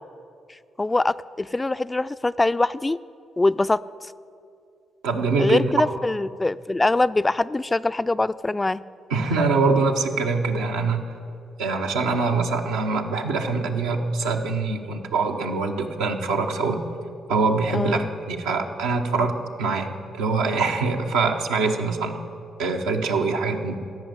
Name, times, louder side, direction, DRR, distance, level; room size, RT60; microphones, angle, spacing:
voice 1, 0.8-3.0 3.4-3.8 5.4-8.8 17.7-18.1, left 2 dB, 20° left, 15 dB, 0.3 m, -23 dB
voice 2, 5.0-5.7 9.1-11.1 11.6-16.8 17.3-22.2 22.6-23.7, right 4 dB, 90° right, 2 dB, 0.9 m, -24 dB
14.0 x 5.7 x 9.3 m, 2.4 s
supercardioid pair, 55°, 0 cm